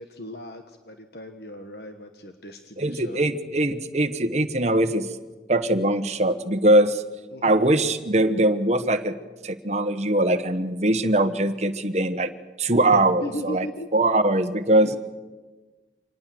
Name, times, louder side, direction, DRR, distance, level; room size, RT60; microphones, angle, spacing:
voice 1, 0.0-3.2 7.3-7.6 12.9-13.9 14.8-15.0, equal, 65° left, 6 dB, 1.4 m, -37 dB
voice 2, 2.8-5.1 5.5-7.0 7.4-9.1 9.4-12.3 12.6-13.7 13.9-14.9, right 1 dB, 40° right, 9 dB, 1.2 m, -21 dB
26.0 x 19.5 x 7.7 m, 1.3 s
head